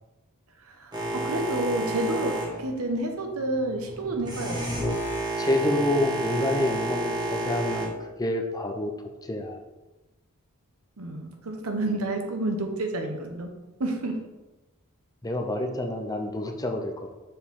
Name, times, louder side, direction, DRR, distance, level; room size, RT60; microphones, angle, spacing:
voice 1, 0.7-5.0 11.0-13.5 13.8-14.2, right 2 dB, 75° right, 4 dB, 0.9 m, -30 dB
Boat Water vehicle, 0.9-7.9, right 1 dB, 20° right, 1.2 m, -31 dB
voice 2, 5.4-7.9 8.2-8.9 9.3-9.6 15.2-17.1, left 1 dB, 15° left, 4 dB, 0.6 m, -27 dB
6.6 x 4.5 x 3.7 m, 1.1 s
head